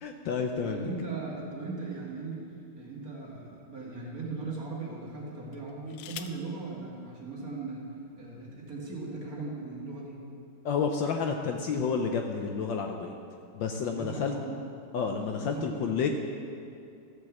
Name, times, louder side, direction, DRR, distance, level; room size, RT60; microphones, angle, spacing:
voice 1, 0.0-0.8 10.6-13.1 13.5-14.3 14.9-16.1, left 5 dB, 70° left, 4 dB, 1.2 m, -30 dB
voice 2, 0.6-7.9 8.2-10.2 13.9-14.6 15.4-16.1, right 3 dB, 45° right, -4 dB, 2.2 m, -38 dB
sound 1, 1.7-3.0 3.7-3.8 5.5-6.5 7.7-7.8 8.1-8.5, left 10 dB, 90° left, 1.6 m, -47 dB
14.5 x 5.4 x 7.1 m, 2.6 s
omnidirectional pair, 2.4 m